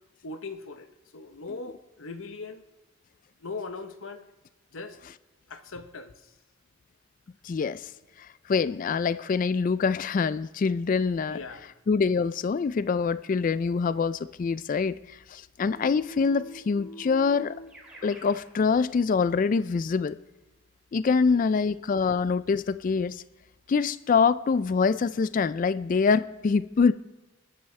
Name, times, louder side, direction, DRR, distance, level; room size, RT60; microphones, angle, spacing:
voice 1, 0.2-0.9 1.1-2.7 3.4-4.3 4.7-5.0 5.5-6.3 11.3-11.7 21.1-21.5, left 3 dB, 70° left, 0.9 m, -40 dB
voice 2, 7.4-7.9 8.2-11.4 11.9-17.5 18.0-20.2 20.9-23.2 23.7-26.9, left 5 dB, 40° left, 0.3 m, -25 dB
Keyboard (musical), 15.7-18.4, right 1 dB, 5° right, 3.3 m, -45 dB
21.0 x 9.8 x 3.2 m
head